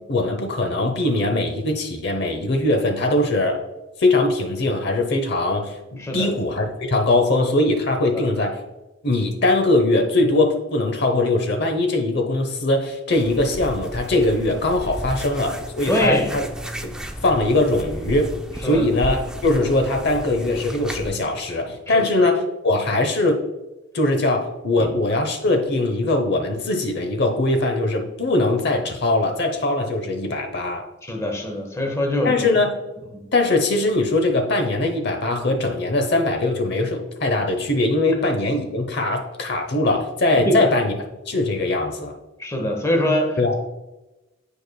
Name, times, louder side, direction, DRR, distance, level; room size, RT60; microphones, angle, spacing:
voice 1, 0.1-3.6 4.0-8.6 9.0-16.5 16.8-16.9 17.2-18.3 18.6-23.4 23.9-30.8 32.2-32.7 33.3-40.9 41.3-42.1 43.4-43.6, left 2 dB, 60° left, 4 dB, 0.8 m, -21 dB
voice 2, 6.0-6.3 8.1-8.2 15.9-16.3 18.6-18.8 21.9-22.1 24.8-24.9 31.0-32.5 40.4-40.7 42.4-43.6, left 1 dB, 15° left, 2 dB, 1.0 m, -23 dB
sound 1, 13.2-21.1, equal, 5° right, 0.4 m, -33 dB
9.2 x 4.9 x 2.2 m, 1.0 s
head